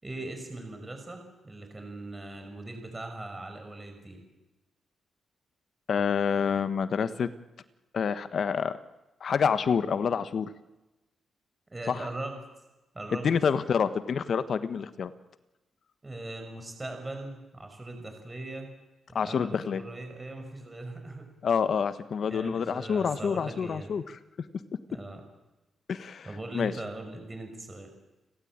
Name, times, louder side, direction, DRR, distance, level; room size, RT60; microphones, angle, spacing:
voice 1, 0.0-4.2 11.7-12.3 12.9-13.3 16.0-18.7 19.1-21.3 22.3-23.9 24.9-25.2 26.2-27.9, right 2 dB, 20° right, 5 dB, 5.8 m, -40 dB
voice 2, 5.9-7.3 7.9-8.8 9.2-10.5 11.9-12.1 13.2-15.1 19.1-19.8 21.4-24.0 25.9-26.3 26.5-26.7, left 6 dB, 60° left, 12 dB, 1.4 m, -27 dB
30.0 x 17.0 x 8.9 m, 1.0 s
cardioid pair, 95°, 0 cm